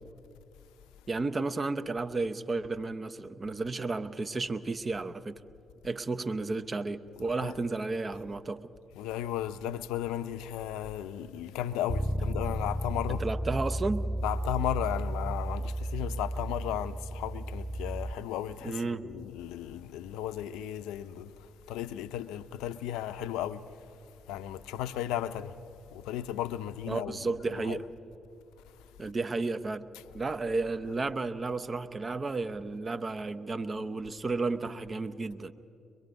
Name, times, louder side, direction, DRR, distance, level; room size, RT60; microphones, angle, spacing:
voice 1, 1.1-5.4 5.8-8.7 13.1-14.1 18.6-19.0 26.9-27.8 29.0-29.9 30.1-35.5, right 3 dB, 40° right, 0.7 m, -32 dB
voice 2, 7.2-7.6 9.0-13.2 14.2-21.3 21.7-23.7 24.3-25.6 25.9-27.2 27.5-27.8, left 11 dB, 80° left, 0.5 m, -35 dB
Bass guitar, 11.9-18.1, right 1 dB, 15° right, 1.8 m, -33 dB
23.0 x 22.0 x 5.3 m
hypercardioid pair, 45°, 0 cm